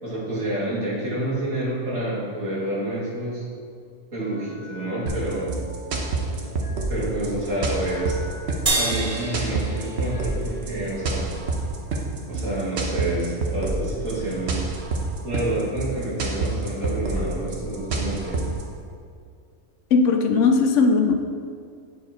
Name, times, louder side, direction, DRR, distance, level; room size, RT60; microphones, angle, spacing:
voice 1, 0.0-3.4 4.1-5.5 6.9-8.2 8.8-11.3 12.3-14.7 15.2-18.4, right 1 dB, 75° right, -8 dB, 2.6 m, -28 dB
sound 1, 4.2-11.2, equal, 40° left, 0.7 m, -43 dB
sound 2, 5.1-18.6, right 3 dB, 55° right, 1.1 m, -28 dB
sound 3, 8.7-11.2, right 2 dB, 35° right, 0.7 m, -28 dB
voice 2, 19.9-21.1, left 4 dB, 70° left, 6 dB, 0.9 m, -18 dB
8.2 x 4.7 x 4.3 m, 2.2 s
omnidirectional pair, 1.4 m